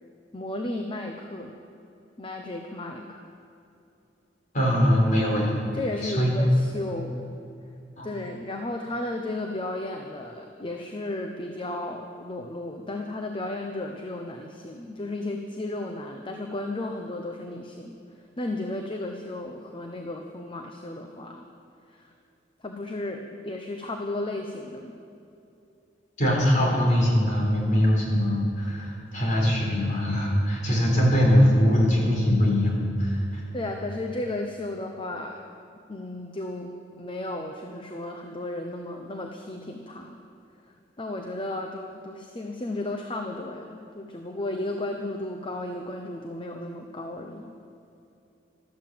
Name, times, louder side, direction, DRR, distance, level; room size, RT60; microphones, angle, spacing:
voice 1, 0.3-1.6 2.2-3.2 5.7-7.3 8.0-18.0 18.4-21.5 21.9-22.1 22.6-25.0 33.5-35.4 35.9-40.2 41.0-47.6, left 2 dB, 30° left, 3 dB, 0.9 m, -34 dB
voice 2, 4.5-5.5 6.0-6.3 8.0-8.1 26.2-33.4, equal, 45° left, -2 dB, 4.1 m, -22 dB
13.5 x 12.0 x 7.7 m, 2.8 s
head